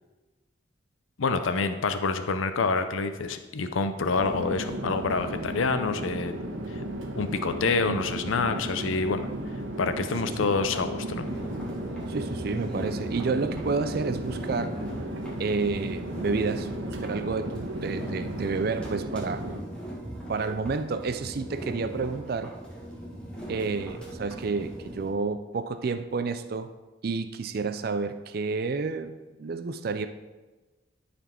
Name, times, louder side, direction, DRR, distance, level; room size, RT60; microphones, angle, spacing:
voice 1, 1.2-6.4 6.7-6.8 7.2-9.3 9.8-11.3, left 4 dB, 85° left, 0.6 m, -27 dB
Chatter / Fixed-wing aircraft airplane, 4.1-19.6, right 1 dB, 80° right, 1.2 m, -35 dB
sound 1, 11.2-25.1, right 1 dB, 5° left, 1.4 m, -40 dB
voice 2, 12.1-14.8 15.4-19.5 20.3-22.6 23.5-26.7 27.0-30.1, right 4 dB, 50° right, 0.4 m, -30 dB
sound 2, 12.3-12.5 13.0-13.2 13.6-14.6 14.9-15.2 15.4-15.9 16.2-17.1 17.4-17.7 18.1-18.3 18.8-19.1 19.4-21.5, equal, 15° right, 2.9 m, -45 dB
12.0 x 4.2 x 4.4 m
head